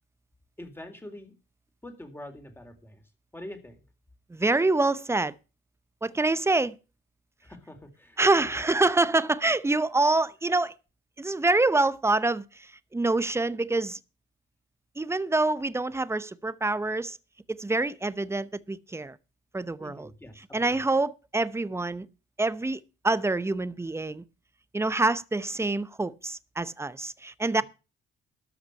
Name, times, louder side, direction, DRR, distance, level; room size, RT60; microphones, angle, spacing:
voice 1, 0.6-1.3 1.8-3.0 3.3-3.8 7.4-8.6 19.8-20.9, left 1 dB, 10° left, 3.7 m, -45 dB
voice 2, 4.3-5.3 6.0-6.7 8.2-10.7 11.2-14.0 15.0-17.2 17.5-19.2 19.5-20.1 20.5-22.1 22.4-24.2 24.7-27.6, right 2 dB, 15° right, 0.9 m, -26 dB
13.0 x 5.9 x 8.2 m
cardioid pair, 90°, 20 cm